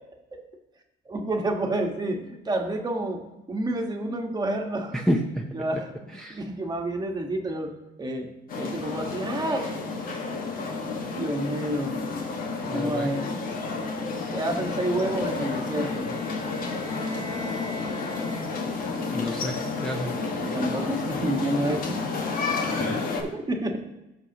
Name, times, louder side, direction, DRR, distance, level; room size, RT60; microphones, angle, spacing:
voice 1, 1.1-3.2 3.5-5.0 5.5-5.9 6.3-7.7 8.0-8.3 8.6-9.7 11.1-12.0 12.7-13.3 14.3-16.1 20.4-22.0 23.2-23.8, right 1 dB, 25° right, 3 dB, 1.4 m, -29 dB
voice 2, 4.9-5.5 6.1-6.4 12.7-13.1 19.1-19.6 19.8-20.1 22.5-23.1, equal, 5° left, -1 dB, 0.8 m, -29 dB
sound 1, 8.5-23.2, left 4 dB, 55° left, 1.6 m, -31 dB
Bowed string instrument, 15.8-19.0, left 2 dB, 35° left, 2.4 m, -41 dB
16.0 x 6.4 x 2.9 m, 0.97 s
cardioid pair, 110°, 17 cm